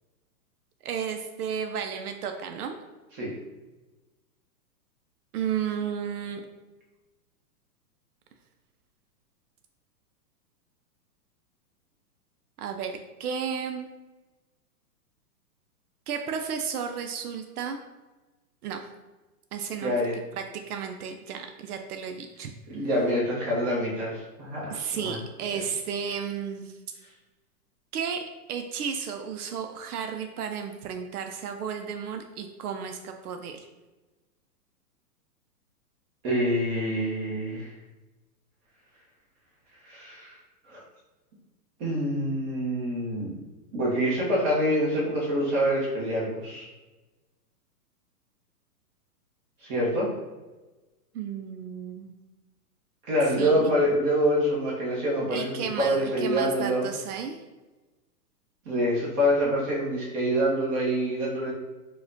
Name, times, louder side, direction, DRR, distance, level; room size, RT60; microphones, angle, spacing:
voice 1, 0.8-2.8 5.3-6.4 12.6-13.9 16.1-17.8 18.6-18.8 19.5-19.9 20.4-22.5 22.7-22.9 24.7-26.8 27.9-33.7 51.1-52.1 53.4-53.8 55.3-57.4, right 7 dB, 70° right, 5 dB, 0.5 m, -33 dB
voice 2, 19.8-20.1 22.7-25.2 36.2-37.7 39.8-40.4 40.7-40.8 41.8-43.3 43.7-46.7 49.6-50.1 53.1-56.8 58.6-61.5, equal, 20° right, -5 dB, 0.8 m, -26 dB
4.8 x 2.2 x 2.6 m, 1.1 s
hypercardioid pair, 145°, 47 cm